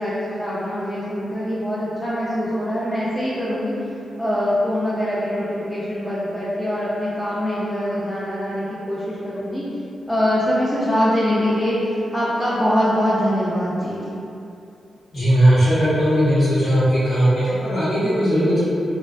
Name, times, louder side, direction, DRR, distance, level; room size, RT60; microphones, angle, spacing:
voice 1, 0.0-3.7 4.2-9.6 10.1-14.1, equal, 5° left, -9 dB, 0.3 m, -23 dB
voice 2, 15.1-18.6, equal, 70° left, -14 dB, 0.9 m, -18 dB
2.5 x 2.2 x 2.3 m, 2.7 s
wide cardioid pair, 110°, 0 cm